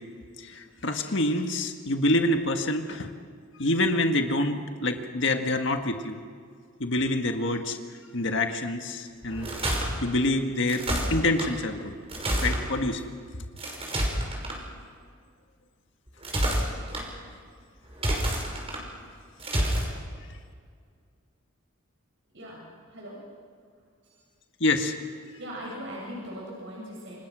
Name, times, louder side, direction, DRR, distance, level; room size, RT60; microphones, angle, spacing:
voice 1, 0.4-3.1 3.6-6.2 6.8-7.8 8.1-9.5 10.0-10.8 11.1-11.9 12.4-13.0 24.6-24.9, left 1 dB, 60° left, 5 dB, 1.7 m, -26 dB
sound 1, 9.2-9.9 10.7-11.5 12.1-12.6 13.6-14.6 16.1-17.0 17.9-18.8 19.4-19.9, right 1 dB, 30° right, 5.6 m, -28 dB
voice 2, 22.3-23.2 24.0-24.1 25.4-27.2, equal, 65° right, -3 dB, 7.7 m, -40 dB
28.0 x 26.5 x 6.3 m, 2.1 s
head